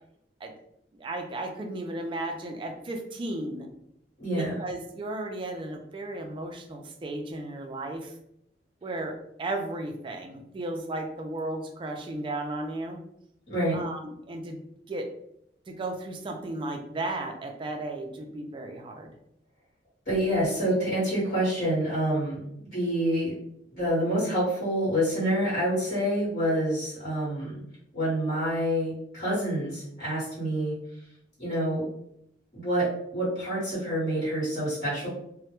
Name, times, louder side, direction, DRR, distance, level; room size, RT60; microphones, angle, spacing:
voice 1, 1.0-3.7 4.3-8.1 8.8-13.0 13.7-14.6 14.9-15.1 15.7-19.1, right 2 dB, 30° right, 3 dB, 0.3 m, -35 dB
voice 2, 4.2-4.6 13.5-13.8 20.1-22.4 22.6-23.3 23.7-27.6 27.9-30.7 31.4-31.9 32.5-32.9 33.1-35.1, equal, 50° left, -10 dB, 1.1 m, -27 dB
2.1 x 2.0 x 2.9 m, 0.76 s
head